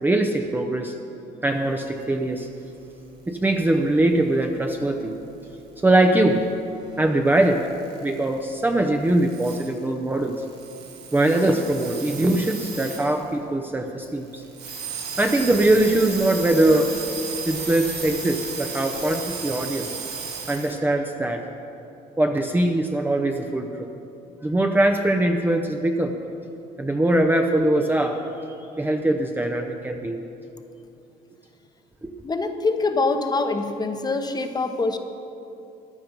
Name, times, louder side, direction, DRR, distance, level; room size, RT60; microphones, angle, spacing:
voice 1, 0.0-0.9 1.4-2.5 3.3-5.2 5.8-6.5 7.0-7.7 8.0-10.4 11.1-14.4 15.2-16.9 17.4-20.0 20.5-21.4 22.2-23.9 24.4-26.1 26.8-28.2 28.8-30.2 32.0-32.1, right 1 dB, 10° right, 4 dB, 0.7 m, -22 dB
sound 1, 3.1-13.4 13.8-13.9 14.0-20.7, right 5 dB, 80° right, 2.4 m, -36 dB
voice 2, 32.2-35.0, left 3 dB, 25° left, 7 dB, 1.0 m, -24 dB
15.0 x 10.5 x 5.2 m, 2.8 s
cardioid pair, 110°, 17 cm